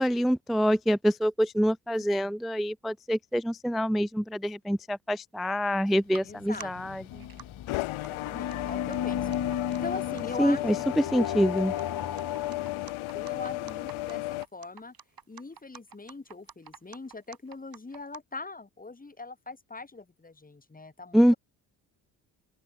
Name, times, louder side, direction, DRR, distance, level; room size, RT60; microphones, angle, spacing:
voice 1, 0.0-7.0 10.4-11.7 21.1-21.3, equal, ahead, 0.4 m, -26 dB
sound 1, 5.9-6.2 6.5-6.6 7.2-7.4 7.7-18.2, right 7 dB, 45° right, 3.0 m, -47 dB
sound 2, 6.2-14.5, left 18 dB, 75° left, 1.2 m, -35 dB
voice 2, 6.2-7.0 8.0-11.0 12.3-12.6 13.1-14.9 15.3-21.4, left 3 dB, 15° left, 1.9 m, -42 dB
sound 3, 7.1-12.9, left 9 dB, 45° left, 1.3 m, -35 dB
open air
hypercardioid pair, 50°, 50 cm